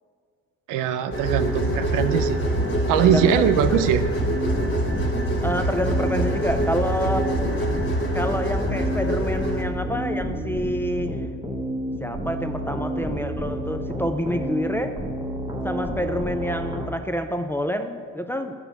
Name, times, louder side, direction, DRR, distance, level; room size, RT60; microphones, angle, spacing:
voice 1, 0.7-2.4 2.9-4.0, right 9 dB, 85° right, 11 dB, 0.5 m, -21 dB
sound 1, 1.1-9.6, right 1 dB, 40° left, 1.1 m, -25 dB
sound 2, 2.2-16.9, equal, 10° right, 0.8 m, -31 dB
voice 2, 3.0-3.9 5.4-7.3 8.1-11.2 12.0-14.9 15.6-18.5, equal, 10° left, 5 dB, 0.3 m, -27 dB
6.0 x 5.0 x 6.4 m, 2.1 s
cardioid pair, 100°, 31 cm